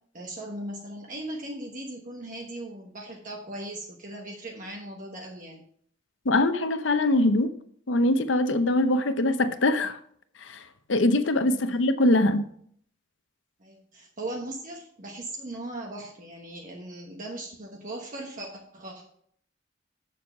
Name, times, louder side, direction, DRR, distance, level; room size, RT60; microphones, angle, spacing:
voice 1, 0.1-5.6 11.5-11.8 13.6-19.0, right 1 dB, 45° right, 0 dB, 1.2 m, -38 dB
voice 2, 6.3-7.5 7.9-10.0 10.4-10.6 10.9-12.5, left 1 dB, 75° left, 11 dB, 0.8 m, -23 dB
7.8 x 6.4 x 5.6 m, 0.63 s
head